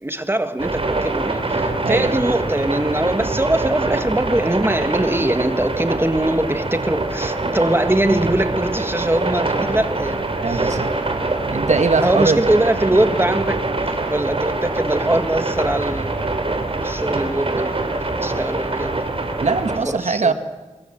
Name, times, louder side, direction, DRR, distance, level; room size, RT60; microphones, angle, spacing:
voice 1, 0.0-10.9 12.0-13.6 14.1-16.5 16.8-19.1 19.9-20.3, right 1 dB, 20° right, 1.7 m, -22 dB
sound 1, 0.6-19.8, right 2 dB, 50° right, 3.5 m, -24 dB
voice 2, 1.8-2.2 10.4-10.9 11.5-12.5 19.4-20.3, right 4 dB, 75° right, 1.8 m, -21 dB
27.0 x 22.5 x 7.5 m
wide cardioid pair, 80°, 12 cm